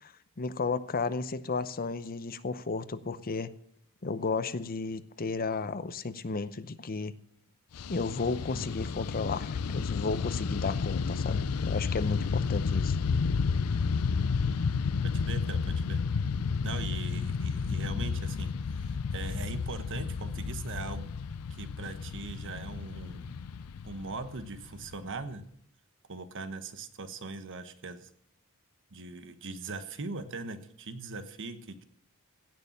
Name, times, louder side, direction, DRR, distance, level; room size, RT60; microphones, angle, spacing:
voice 1, 0.0-3.5 4.0-7.1 7.9-13.0, left 4 dB, 40° left, 13 dB, 0.7 m, -33 dB
Fixed-wing aircraft airplane, 7.7-25.2, left 5 dB, 80° left, 0.5 m, -31 dB
voice 2, 15.0-16.0 16.6-21.1 21.5-23.4 23.8-25.4 26.1-28.1 28.9-31.8, right 3 dB, 60° right, 10 dB, 1.2 m, -40 dB
16.5 x 6.8 x 7.2 m, 0.68 s
head